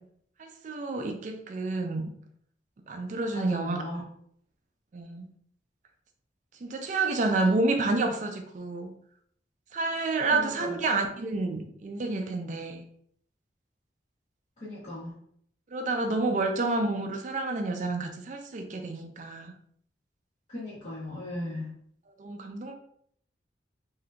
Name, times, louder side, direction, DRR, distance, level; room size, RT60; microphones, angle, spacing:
voice 1, 0.4-2.1 2.9-3.8 4.9-5.3 6.6-8.9 9.7-12.8 15.7-19.5 22.2-22.7, right 3 dB, 40° right, 4 dB, 0.4 m, -29 dB
voice 2, 3.3-4.0 10.3-10.8 14.6-15.1 20.5-21.7, left 1 dB, 40° left, -11 dB, 0.9 m, -37 dB
3.5 x 2.6 x 2.3 m, 0.66 s
head